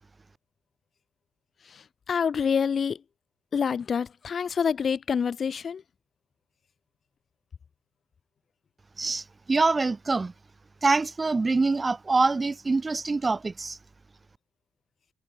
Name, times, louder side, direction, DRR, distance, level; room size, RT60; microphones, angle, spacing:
voice 1, 1.7-3.0 3.5-5.8, left 6 dB, 45° left, 3.1 m, -27 dB
voice 2, 9.0-10.3 10.8-13.8, right 3 dB, 25° right, 0.7 m, -25 dB
cardioid pair, 90°, 0 cm